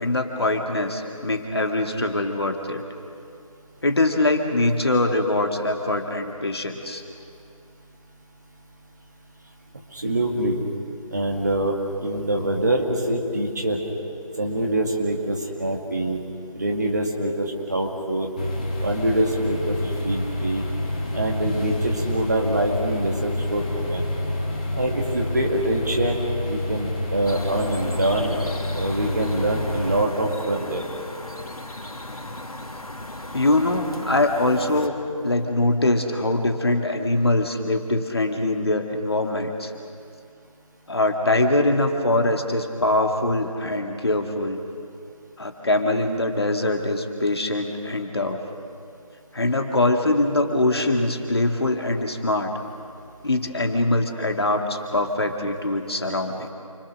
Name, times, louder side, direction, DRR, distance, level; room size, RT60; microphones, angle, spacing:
voice 1, 0.0-2.8 3.8-7.0 33.3-35.0 35.2-39.7 40.9-44.6 45.4-48.4 49.3-52.5 53.2-56.5, left 2 dB, 45° left, 3 dB, 2.1 m, -23 dB
voice 2, 9.9-10.6 11.1-11.7 12.0-13.8 14.4-16.2 16.5-18.3 18.8-20.7 21.1-24.0 24.7-28.4 28.7-30.8, right 1 dB, 30° right, 0 dB, 2.3 m, -25 dB
sound 1, 18.4-30.0, left 1 dB, 15° left, 1.7 m, -28 dB
sound 2, 27.2-34.9, left 1 dB, 85° left, 2.9 m, -37 dB
29.0 x 25.0 x 6.4 m, 2.4 s
figure-of-eight pair, 175°, 18 cm